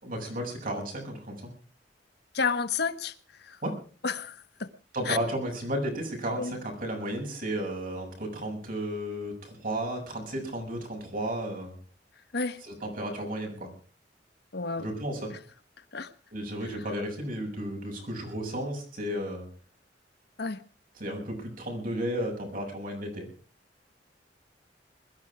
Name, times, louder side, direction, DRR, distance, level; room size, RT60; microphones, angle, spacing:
voice 1, 0.0-1.5 3.6-3.7 4.9-11.7 12.6-13.7 14.8-15.3 16.3-19.5 21.0-23.3, right 1 dB, 50° right, 7.3 m, -33 dB
voice 2, 2.3-3.1 3.4-3.6 4.0-4.7 5.0-5.2 6.4-6.5 12.3-12.6 14.5-14.9 15.9-16.1 20.4-20.6, left 5 dB, 65° left, 1.1 m, -30 dB
21.5 x 13.0 x 4.9 m
head